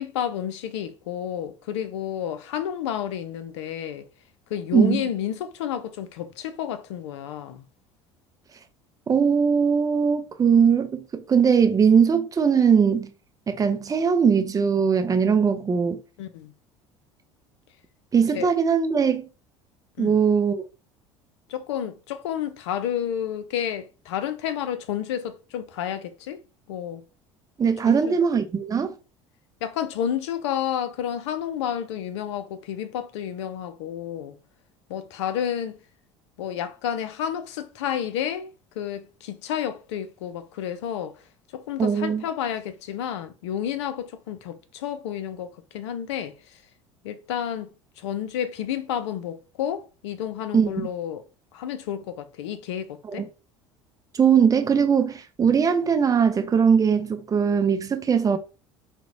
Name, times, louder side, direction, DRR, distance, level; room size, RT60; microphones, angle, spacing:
voice 1, 0.0-4.1 4.5-7.6 16.2-16.5 18.3-18.5 20.0-20.2 21.5-26.4 26.7-27.0 27.9-28.2 29.6-34.4 34.9-35.8 36.4-41.2 41.5-46.3 47.0-47.7 48.0-51.2 51.5-53.3, left 9 dB, 60° left, 0.4 m, -30 dB
voice 2, 4.7-5.0 9.1-13.1 13.5-16.0 18.1-19.3 20.0-20.6 27.6-28.9 41.8-42.2 50.5-50.9 53.1-53.2 54.1-58.4, right 6 dB, 20° right, 0.5 m, -20 dB
3.0 x 2.0 x 3.6 m
figure-of-eight pair, 65°, 16 cm